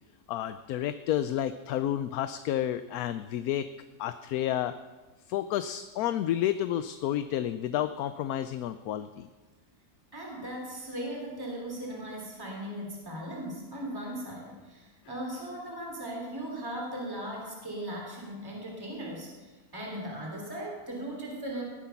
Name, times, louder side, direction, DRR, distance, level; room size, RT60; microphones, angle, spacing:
voice 1, 0.3-3.7 4.0-4.8 5.3-9.3, left 11 dB, 75° left, 11 dB, 1.1 m, -30 dB
voice 2, 10.1-21.6, right 1 dB, 15° right, -1 dB, 3.2 m, -38 dB
18.5 x 9.9 x 5.8 m, 1.3 s
omnidirectional pair, 1.6 m